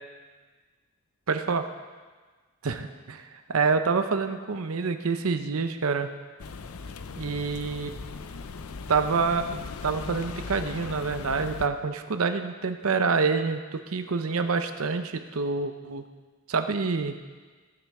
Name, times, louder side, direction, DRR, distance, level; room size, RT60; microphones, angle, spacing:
voice 1, 1.3-1.6 2.6-6.1 7.2-7.9 8.9-16.0 16.5-17.2, right 4 dB, 80° right, 8 dB, 0.8 m, -27 dB
sound 1, 6.4-11.7, left 4 dB, 80° left, 0.6 m, -38 dB
18.5 x 7.6 x 4.8 m, 1.4 s
head